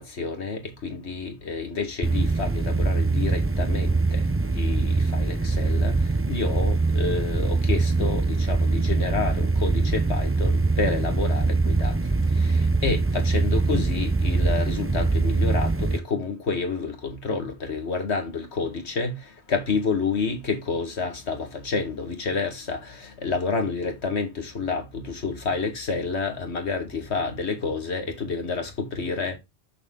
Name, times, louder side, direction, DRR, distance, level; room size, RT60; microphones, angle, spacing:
voice 1, 0.0-4.3 4.5-12.0 12.4-29.4, left 4 dB, 80° left, 2.1 m, -29 dB
sound 1, 2.0-16.0, right 3 dB, 15° right, 0.5 m, -23 dB
6.7 x 6.5 x 3.8 m
omnidirectional pair, 1.1 m